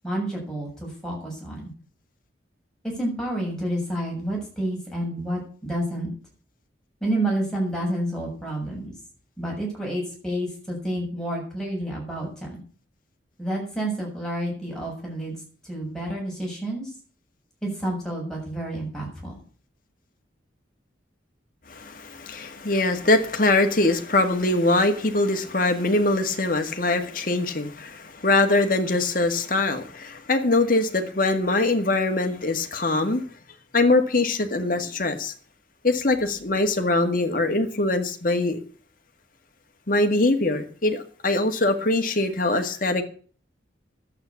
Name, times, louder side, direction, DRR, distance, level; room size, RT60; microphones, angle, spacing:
voice 1, 0.0-1.7 2.8-6.1 7.0-8.9 9.4-12.6 13.4-15.4 15.6-16.9 17.6-19.4, right 1 dB, 5° left, -3 dB, 7.1 m, -29 dB
voice 2, 21.7-33.2 33.7-35.3 35.8-38.6 39.9-43.0, left 2 dB, 45° left, 6 dB, 1.9 m, -22 dB
11.5 x 8.7 x 8.4 m, 0.43 s
head